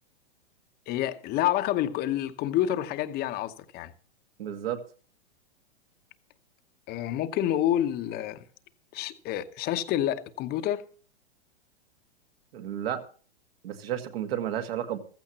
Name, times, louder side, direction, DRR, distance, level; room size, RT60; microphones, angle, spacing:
voice 1, 0.9-3.9 6.9-8.4 8.9-10.9, left 12 dB, 30° left, 0.9 m, -28 dB
voice 2, 4.4-4.8 12.5-13.0 13.6-15.0, right 10 dB, 65° right, 2.0 m, -32 dB
15.0 x 14.5 x 2.9 m
hypercardioid pair, 125°, 32 cm